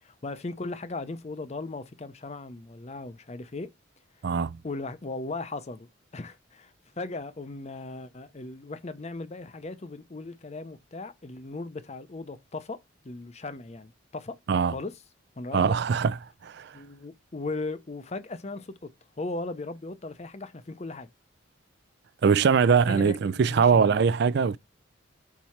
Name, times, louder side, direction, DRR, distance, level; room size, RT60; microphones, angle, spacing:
voice 1, 0.0-3.7 4.6-12.8 13.0-14.4 14.7-14.9 15.4-15.7 16.7-18.9 19.2-21.1 22.5-24.0, left 3 dB, 35° left, 0.6 m, -37 dB
voice 2, 4.2-4.6 14.5-14.7 15.5-16.2 16.4-16.7 22.2-24.6, right 6 dB, 55° right, 0.3 m, -22 dB
4.7 x 4.1 x 5.7 m
head